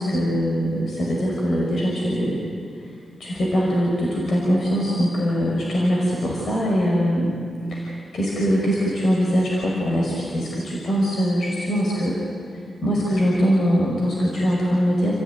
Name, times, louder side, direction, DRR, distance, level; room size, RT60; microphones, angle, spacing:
voice 1, 0.0-2.4 2.8-2.9 3.2-7.3 7.7-12.1 12.8-15.1, equal, 70° left, -3 dB, 5.7 m, -22 dB
29.5 x 15.5 x 9.5 m, 2.2 s
cardioid pair, 60°, 0 cm